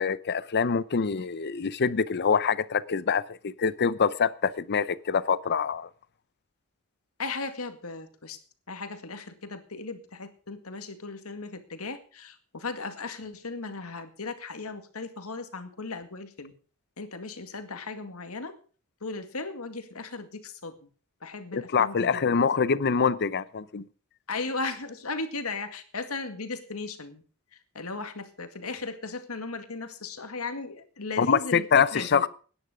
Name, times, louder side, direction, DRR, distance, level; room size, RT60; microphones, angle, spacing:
voice 1, 0.0-5.9 21.5-23.8 31.2-32.3, left 6 dB, 50° left, 0.6 m, -25 dB
voice 2, 7.2-8.4 8.7-16.5 17.0-18.5 19.0-20.8 21.2-22.2 24.3-27.2 27.7-31.6 31.9-32.2, left 3 dB, 90° left, 2.1 m, -36 dB
17.5 x 10.5 x 5.0 m
head